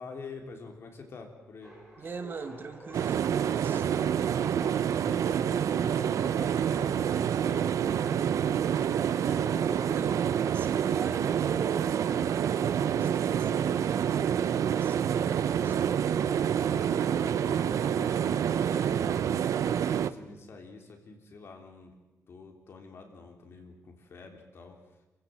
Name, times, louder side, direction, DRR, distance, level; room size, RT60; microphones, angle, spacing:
voice 1, 0.0-2.1 4.2-8.2 9.2-10.0 16.2-19.2 20.0-21.9 22.3-24.8, left 4 dB, 50° left, 3 dB, 3.5 m, -47 dB
sound 1, 1.6-19.1, equal, 5° right, 6.9 m, -53 dB
voice 2, 2.0-3.9 9.2-15.8, right 5 dB, 40° right, 8 dB, 1.5 m, -43 dB
sound 2, 2.9-20.1, right 9 dB, 80° right, 0.8 m, -27 dB
28.0 x 15.5 x 7.8 m, 1.1 s
wide cardioid pair, 165°, 5 cm